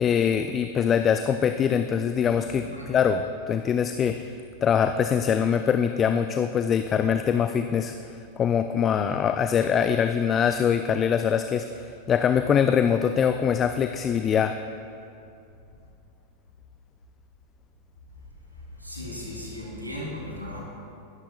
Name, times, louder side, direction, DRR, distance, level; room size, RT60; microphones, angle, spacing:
voice 1, 0.0-4.3 4.6-7.9 8.4-14.6, left 7 dB, 25° left, 8 dB, 0.4 m, -23 dB
voice 2, 2.4-2.9 18.8-20.6, left 1 dB, 85° right, -4 dB, 3.3 m, -37 dB
20.0 x 11.5 x 2.4 m, 2.5 s
figure-of-eight pair, 90°, 0 cm